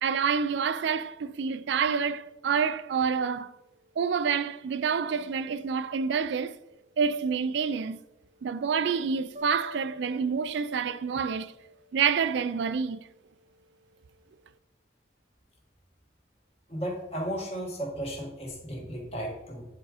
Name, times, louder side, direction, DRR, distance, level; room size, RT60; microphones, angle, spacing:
voice 1, 0.0-3.5 4.0-6.6 7.0-8.0 8.4-11.5 11.9-13.0, right 6 dB, 75° right, 0.4 m, -28 dB
sound 1, 9.4-12.5, left 5 dB, 40° right, 0.9 m, -48 dB
voice 2, 16.7-19.7, equal, 35° left, 1.7 m, -34 dB
9.4 x 3.7 x 5.0 m
head